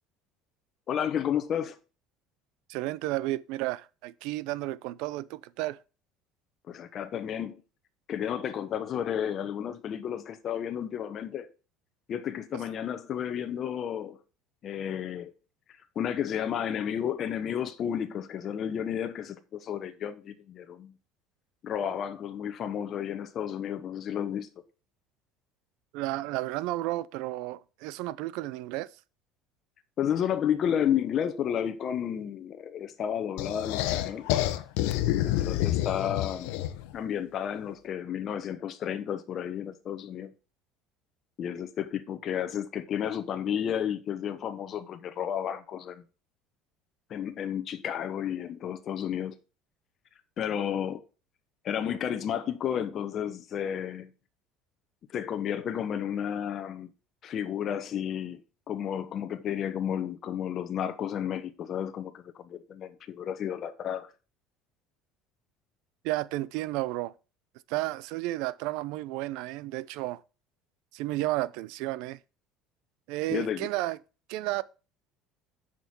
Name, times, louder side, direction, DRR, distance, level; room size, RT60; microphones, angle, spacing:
voice 1, 0.9-1.8 6.7-7.6 8.1-11.5 12.1-14.2 14.6-15.3 15.9-20.9 21.6-24.5 30.0-34.3 35.2-36.5 36.9-40.3 41.4-46.0 47.1-49.3 50.4-51.0 51.6-54.1 55.1-56.9 57.2-58.4 58.7-64.1 73.3-73.7, left 9 dB, 40° left, 1.0 m, -32 dB
voice 2, 2.7-5.8 25.9-28.9 66.0-67.1 67.7-70.2 70.9-72.2 73.1-74.0 74.3-74.6, right 17 dB, 70° right, 0.6 m, -32 dB
sound 1, 33.4-36.9, left 14 dB, 80° left, 1.0 m, -28 dB
9.0 x 6.2 x 4.4 m
cardioid pair, 135°, 0 cm